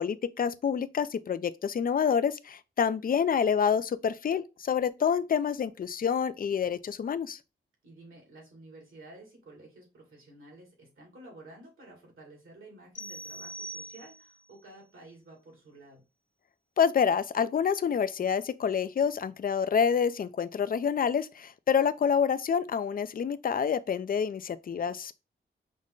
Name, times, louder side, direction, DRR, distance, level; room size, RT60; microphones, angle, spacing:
voice 1, 0.0-7.4 16.8-25.1, left 7 dB, 45° left, 0.4 m, -27 dB
voice 2, 7.8-16.0, right 2 dB, 75° right, 2.4 m, -52 dB
sound 1, 12.9-14.5, right 1 dB, 65° left, 1.3 m, -42 dB
5.2 x 2.1 x 3.6 m
wide cardioid pair, 75°, 21 cm